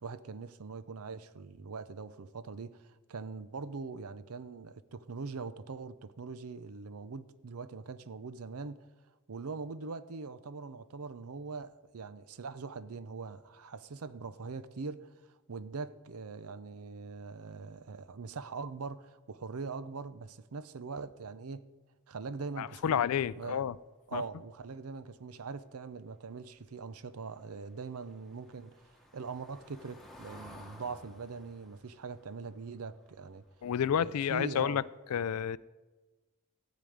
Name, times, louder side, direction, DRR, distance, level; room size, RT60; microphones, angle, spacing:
voice 1, 0.0-8.9 9.3-21.6 22.1-23.0 23.4-23.6 24.1-33.4 34.0-34.8, right 4 dB, 75° right, 0.6 m, -42 dB
voice 2, 22.6-23.7 24.1-24.2 33.6-34.8 35.1-35.6, left 8 dB, 85° left, 0.4 m, -30 dB
Car passing by / Engine, 27.0-34.0 34.3-34.5 34.8-34.9, left 1 dB, ahead, 1.2 m, -56 dB
14.5 x 5.1 x 9.3 m
head